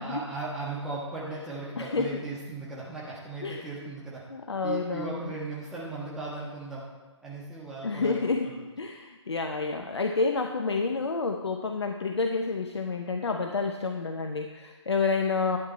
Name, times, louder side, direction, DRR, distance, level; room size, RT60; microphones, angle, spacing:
voice 1, 0.0-4.2 4.6-6.9 7.2-8.5, right 3 dB, 5° right, -7 dB, 1.6 m, -37 dB
voice 2, 1.8-2.1 3.4-3.9 4.3-5.3 7.8-15.6, left 4 dB, 65° left, 5 dB, 0.8 m, -29 dB
11.0 x 9.2 x 4.3 m, 1.2 s
figure-of-eight pair, 140°, 15 cm